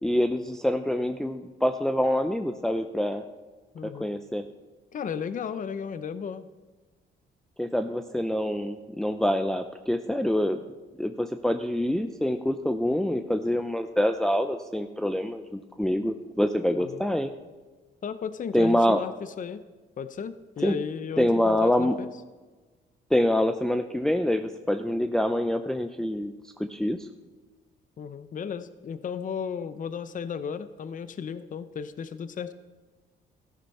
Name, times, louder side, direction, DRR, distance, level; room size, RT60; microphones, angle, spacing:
voice 1, 0.0-3.2 3.8-4.4 7.6-10.6 11.0-17.3 18.5-19.0 20.6-20.7 21.2-22.0 23.1-26.3 26.7-27.1, left 1 dB, ahead, 6 dB, 0.6 m, -26 dB
voice 2, 3.7-4.1 4.9-6.4 16.7-17.0 18.0-19.6 20.0-22.1 28.0-32.5, left 7 dB, 40° left, 13 dB, 0.7 m, -34 dB
14.0 x 11.5 x 4.3 m, 1.3 s
cardioid pair, 90°, 20 cm